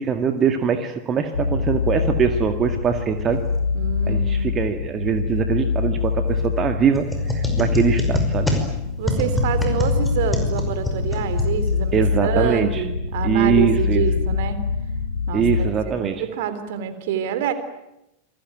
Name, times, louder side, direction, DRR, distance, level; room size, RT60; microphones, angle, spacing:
voice 1, 0.0-3.4 4.1-7.1 7.3-8.5 11.9-12.8 13.2-14.0 15.3-16.2, right 7 dB, 25° right, 7 dB, 2.0 m, -22 dB
sound 1, 1.3-15.7, left 5 dB, 75° left, 3.0 m, -24 dB
voice 2, 3.7-4.5 9.0-14.6 15.3-17.5, right 8 dB, 50° right, 10 dB, 3.7 m, -27 dB
sound 2, 6.9-12.0, equal, 5° left, 5.5 m, -26 dB
28.0 x 21.5 x 9.2 m, 0.88 s
figure-of-eight pair, 90°, 0 cm